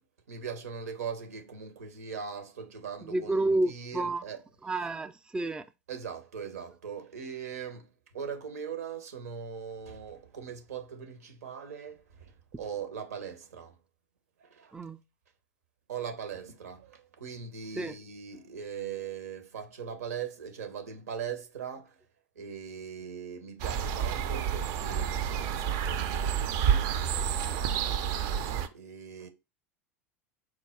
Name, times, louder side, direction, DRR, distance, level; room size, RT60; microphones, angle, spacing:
voice 1, 0.3-4.9 5.9-13.8 14.4-14.9 15.9-22.0 22.3-27.0 28.7-29.3, right 7 dB, 85° right, 0.9 m, -40 dB
voice 2, 3.1-4.2 4.6-5.6 14.7-15.0 17.8-17.9, right 2 dB, 10° right, 0.4 m, -30 dB
sound 1, 23.6-28.7, right 8 dB, 60° right, 0.5 m, -29 dB
4.6 x 2.3 x 4.4 m
hypercardioid pair, 90°, 8 cm